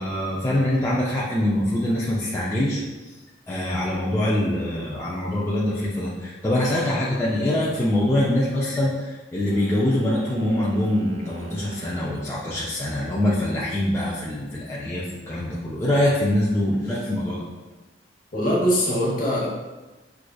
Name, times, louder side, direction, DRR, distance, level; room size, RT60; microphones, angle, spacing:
voice 1, 0.0-2.8 3.5-17.4, left 1 dB, 15° left, -7 dB, 0.4 m, -24 dB
sound 1, 9.5-12.3, right 4 dB, 70° right, 0.5 m, -42 dB
voice 2, 18.3-19.5, equal, 45° left, -5 dB, 0.9 m, -22 dB
4.7 x 2.4 x 2.2 m, 1.2 s
head